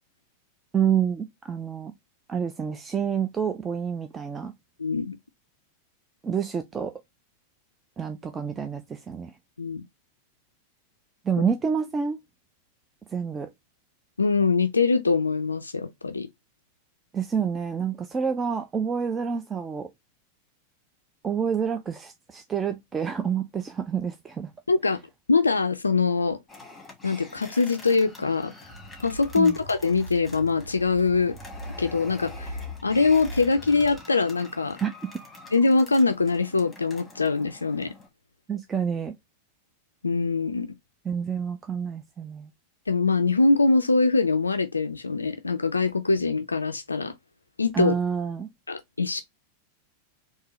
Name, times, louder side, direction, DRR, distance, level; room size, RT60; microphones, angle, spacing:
voice 1, 0.7-1.9 2.3-4.5 6.2-6.9 8.0-9.3 11.2-12.2 13.1-13.5 17.1-19.9 21.2-24.5 29.4-29.6 34.8-34.9 38.5-39.2 41.1-42.5 47.7-48.5, right 7 dB, 20° right, 0.4 m, -28 dB
voice 2, 4.8-5.2 9.6-9.8 11.4-11.5 14.2-16.3 24.7-25.0 25.3-26.4 27.0-28.5 29.0-31.3 31.8-34.8 35.5-37.9 40.0-40.7 42.9-47.1 47.6-47.9 48.7-49.2, left 4 dB, 80° left, 0.3 m, -23 dB
sound 1, 26.5-38.1, left 2 dB, 10° left, 1.5 m, -47 dB
sound 2, 28.6-34.0, equal, 85° right, 1.4 m, -41 dB
3.7 x 2.7 x 2.9 m
figure-of-eight pair, 90°, 0 cm